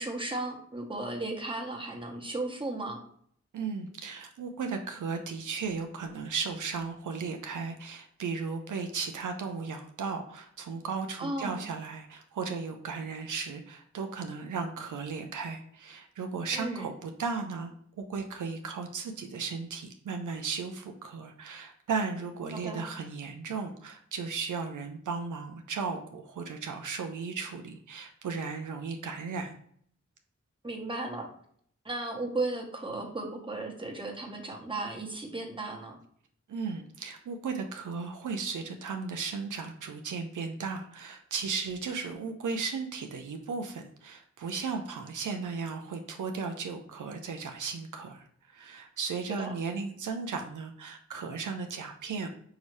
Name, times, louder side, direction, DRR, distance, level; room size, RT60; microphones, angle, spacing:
voice 1, 0.0-3.0 11.2-11.6 16.5-16.9 22.5-22.8 30.6-31.3 31.8-36.0 49.4-49.5, right 2 dB, 15° right, 0 dB, 1.1 m, -35 dB
voice 2, 3.5-29.5 36.5-52.3, right 5 dB, 85° right, 5 dB, 0.5 m, -35 dB
4.8 x 2.7 x 3.1 m, 0.62 s
cardioid pair, 45°, 30 cm